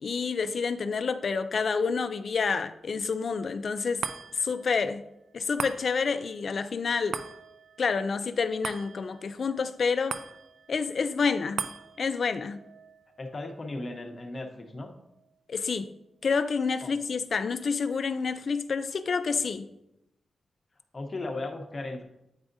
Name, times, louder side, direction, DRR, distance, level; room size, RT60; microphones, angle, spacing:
voice 1, 0.0-4.0 4.3-5.0 5.3-7.2 7.8-10.2 10.7-11.6 12.0-12.6 15.5-15.9 16.2-19.7, left 5 dB, 50° left, 0.3 m, -28 dB
sound 1, 4.0-16.6 17.0-17.1, right 6 dB, 85° right, 0.3 m, -42 dB
voice 2, 13.2-14.9 16.8-16.9 20.9-22.0, left 2 dB, 30° left, 0.8 m, -36 dB
8.8 x 4.8 x 2.6 m
wide cardioid pair, 155°, 0 cm